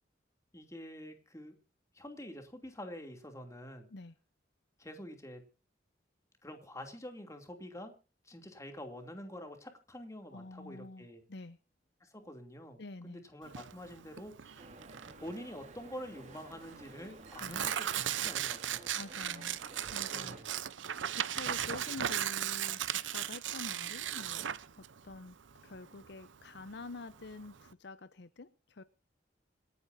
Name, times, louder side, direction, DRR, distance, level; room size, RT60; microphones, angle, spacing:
voice 1, 0.5-1.5 1.9-3.9 4.8-5.4 6.4-7.9 8.2-11.2 12.0-14.6 15.2-18.9 20.0-20.5, equal, 15° left, 5 dB, 2.8 m, -47 dB
voice 2, 10.3-11.6 12.8-13.2 17.4-17.6 18.9-19.6 19.9-20.4 21.1-24.5 24.8-25.4 25.6-28.8, left 3 dB, 60° left, 13 dB, 0.8 m, -47 dB
Tearing, 13.5-27.7, right 10 dB, 85° right, 0.7 m, -37 dB
sound 1, 14.6-20.4, right 3 dB, 40° right, 2.1 m, -52 dB
27.0 x 9.5 x 2.7 m, 0.34 s
head